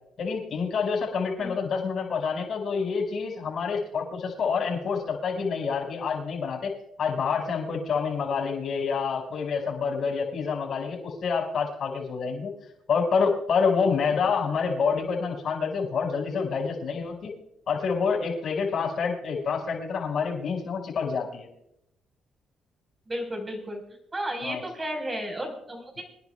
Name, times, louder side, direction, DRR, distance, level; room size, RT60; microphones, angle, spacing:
voice 1, 0.2-12.5 12.9-17.3 17.7-21.5 24.4-24.6 26.0-26.1, left 5 dB, 60° left, -1 dB, 5.7 m, -27 dB
voice 2, 23.1-23.8 24.1-26.0, equal, 25° right, 3 dB, 4.8 m, -33 dB
26.5 x 10.5 x 2.4 m, 0.81 s
cardioid pair, 90°, 0 cm